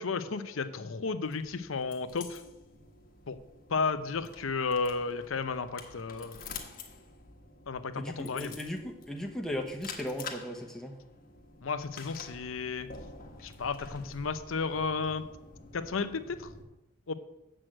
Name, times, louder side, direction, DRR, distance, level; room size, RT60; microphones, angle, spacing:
voice 1, 0.0-2.4 3.3-3.4 3.7-6.4 7.7-8.6 11.6-12.9 13.4-15.2 15.7-16.5 17.1-17.2, left 4 dB, 80° left, 11 dB, 0.7 m, -33 dB
sound 1, 1.2-16.6, left 5 dB, 45° left, 1.2 m, -48 dB
voice 2, 8.0-10.9, left 1 dB, ahead, 1 dB, 1.0 m, -37 dB
7.6 x 6.3 x 7.7 m, 0.96 s
head